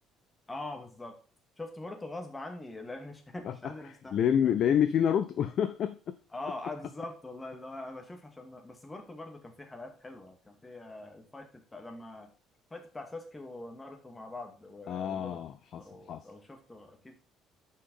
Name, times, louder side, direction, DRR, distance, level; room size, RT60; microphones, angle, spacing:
voice 1, 0.5-1.1 1.6-4.5 6.3-12.3 12.7-15.4 15.7-17.1, left 2 dB, 20° left, 4 dB, 2.2 m, -43 dB
voice 2, 4.1-6.2 14.9-15.8 16.1-16.2, left 9 dB, 55° left, 11 dB, 0.5 m, -27 dB
6.5 x 5.7 x 5.4 m, 0.38 s
hypercardioid pair, 55°, 0 cm